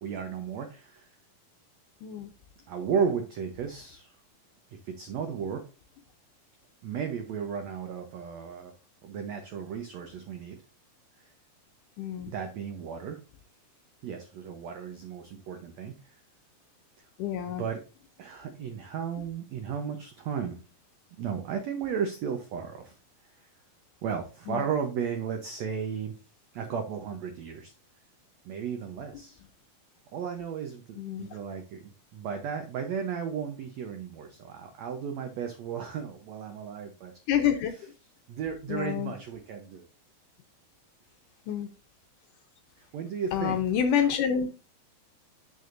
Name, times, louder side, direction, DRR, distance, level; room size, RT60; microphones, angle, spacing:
voice 1, 0.0-1.0 2.7-4.1 4.8-5.6 6.8-8.7 9.0-10.6 12.3-13.2 14.0-16.0 17.5-17.8 18.2-20.6 21.2-22.9 24.0-26.1 26.5-27.7 28.4-29.4 30.1-37.1 38.3-39.8 42.9-43.6, right 7 dB, 85° right, 5 dB, 1.5 m, -34 dB
voice 2, 12.0-12.3 17.2-17.6 24.5-24.6 31.0-31.3 37.3-37.7 38.7-39.1 41.5-41.7 43.3-44.5, left 8 dB, 75° left, 6 dB, 2.0 m, -27 dB
9.4 x 6.2 x 2.5 m, 0.33 s
omnidirectional pair, 4.3 m